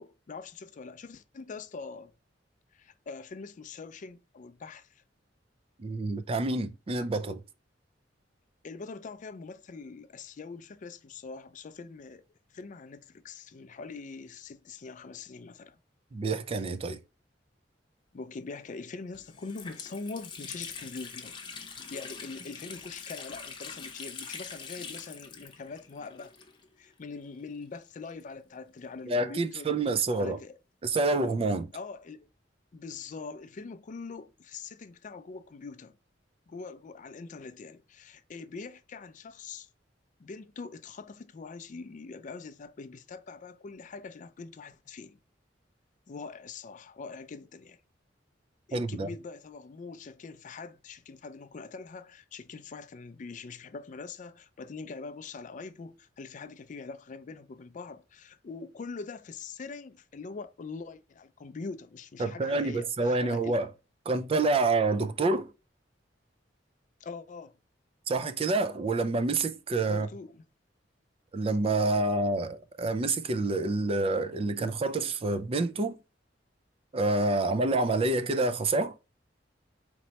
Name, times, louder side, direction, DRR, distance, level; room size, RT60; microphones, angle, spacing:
voice 1, 0.0-2.1 2.7-5.0 8.6-12.2 12.5-15.8 18.1-21.4 21.9-26.3 26.8-29.7 30.1-30.5 31.7-32.3 32.7-36.0 36.5-39.7 40.2-45.2 46.1-47.8 48.7-63.6 67.0-67.6 69.9-70.4, left 4 dB, 45° left, 0.4 m, -43 dB
voice 2, 5.8-7.4 16.1-17.0 29.1-30.4 30.8-31.7 48.7-49.1 62.2-63.7 64.1-65.5 68.1-70.1 71.3-75.9 76.9-78.9, right 2 dB, 30° right, 0.4 m, -27 dB
Water tap faucet, 18.7-18.8 19.1-26.9 27.1-27.2 28.1-29.6, left 5 dB, 25° left, 0.8 m, -44 dB
4.4 x 3.1 x 2.8 m
head